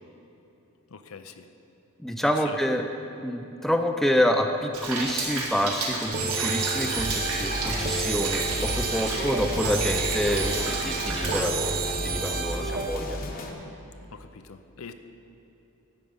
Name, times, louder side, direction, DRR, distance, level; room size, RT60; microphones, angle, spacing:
voice 1, 0.9-1.4 2.2-2.6 14.0-14.9, left 5 dB, 65° left, 9 dB, 0.6 m, -43 dB
voice 2, 2.0-2.9 3.2-11.8 12.0-13.2, equal, ahead, 5 dB, 0.4 m, -27 dB
Rain, 4.7-11.4, right 3 dB, 80° right, 1.8 m, -32 dB
sound 1, 6.1-13.0, right 4 dB, 40° right, 0.7 m, -30 dB
sound 2, 6.7-13.5, left 1 dB, 40° left, 1.0 m, -34 dB
11.5 x 7.4 x 5.4 m, 3.0 s
head